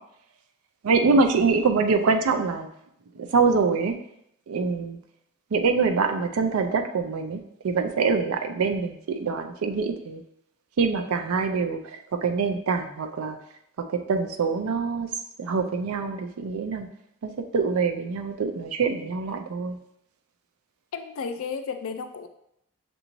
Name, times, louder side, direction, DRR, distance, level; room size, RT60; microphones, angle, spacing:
voice 1, 0.8-2.7 3.2-3.9 4.5-5.0 5.5-7.4 7.6-10.2 10.8-11.8 12.2-13.4 13.9-15.1 15.4-16.9 17.2-19.8, right 4 dB, 85° right, 6 dB, 0.4 m, -24 dB
voice 2, 20.9-22.3, left 5 dB, 70° left, 8 dB, 0.4 m, -33 dB
6.6 x 2.6 x 3.0 m, 0.76 s
head